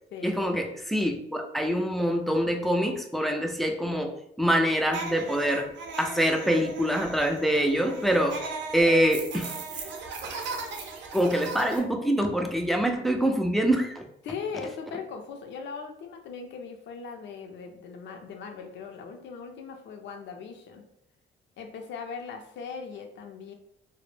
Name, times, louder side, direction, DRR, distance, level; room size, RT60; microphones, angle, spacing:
voice 1, 0.2-5.7 6.0-8.4 8.7-9.5 11.1-14.0, equal, ahead, 4 dB, 0.3 m, -25 dB
sound 1, 4.9-11.8, right 3 dB, 70° right, 0.5 m, -37 dB
voice 2, 14.2-20.8 21.6-23.5, left 5 dB, 65° left, 4 dB, 0.5 m, -39 dB
2.1 x 2.0 x 3.1 m, 0.75 s
cardioid pair, 90°, 20 cm